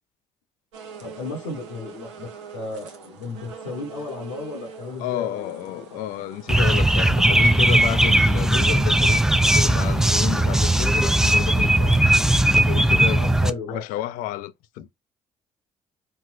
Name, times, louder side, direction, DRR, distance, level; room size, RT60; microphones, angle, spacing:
sound 1, 0.7-6.8, right 6 dB, 85° right, 0.7 m, -42 dB
voice 1, 1.0-2.3 2.5-6.0 13.2-13.8, left 3 dB, 85° left, 0.9 m, -34 dB
voice 2, 5.0-9.3 9.5-12.0 12.5-13.3 13.7-14.9, left 13 dB, 70° left, 0.4 m, -31 dB
sound 2, 6.5-13.5, right 1 dB, 5° right, 0.3 m, -18 dB
4.2 x 2.1 x 2.3 m
hypercardioid pair, 50°, 15 cm